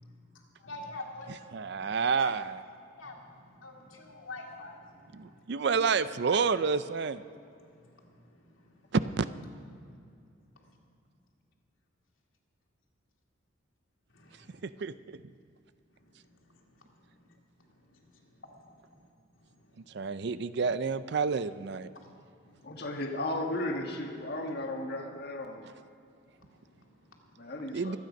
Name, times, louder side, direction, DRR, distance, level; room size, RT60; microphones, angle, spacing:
voice 1, 0.3-1.8 2.2-2.3 3.0-5.4 6.3-6.4 7.6-9.0 10.6-10.7 14.1-14.6 15.9-19.1 19.3-20.0 21.9-22.1 22.4-22.9 26.3-27.5, left 2 dB, 75° left, 0 dB, 2.5 m, -49 dB
voice 2, 1.5-2.6 5.1-7.2 8.9-9.3 14.6-15.2 19.9-21.9 27.7-28.0, right 5 dB, 55° right, 14 dB, 0.5 m, -29 dB
voice 3, 22.6-25.7 27.4-28.0, left 1 dB, 50° left, 3 dB, 1.5 m, -35 dB
24.0 x 9.2 x 5.3 m, 2.5 s
head